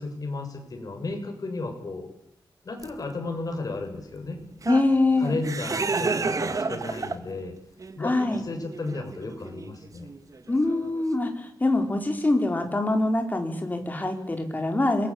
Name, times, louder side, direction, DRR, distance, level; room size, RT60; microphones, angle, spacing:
voice 1, 0.0-2.1 2.6-4.4 5.2-7.5 7.9-10.1, left 3 dB, 50° left, 4 dB, 7.2 m, -33 dB
sound 1, 2.8-2.9 3.6-3.7 4.4-7.4 7.8-11.0, right 4 dB, 45° right, 2.0 m, -31 dB
voice 2, 4.7-5.4 8.0-8.4 10.5-15.1, left 2 dB, 20° left, 4 dB, 4.8 m, -24 dB
29.0 x 22.0 x 8.8 m, 0.73 s
wide cardioid pair, 140°, 8 cm